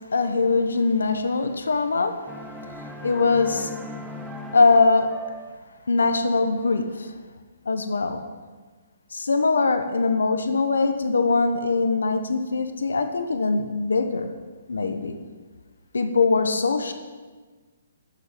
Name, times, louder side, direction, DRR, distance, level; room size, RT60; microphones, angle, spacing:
voice 1, 0.1-2.1 2.8-3.7 4.5-5.1 5.9-7.1 7.7-8.2 9.1-14.3 14.7-15.1 15.9-16.9, left 4 dB, 90° left, 7 dB, 1.2 m, -22 dB
sound 1, 2.3-5.6, left 1 dB, 5° right, 0.8 m, -39 dB
13.0 x 6.8 x 9.2 m, 1.4 s
hypercardioid pair, 150°, 0 cm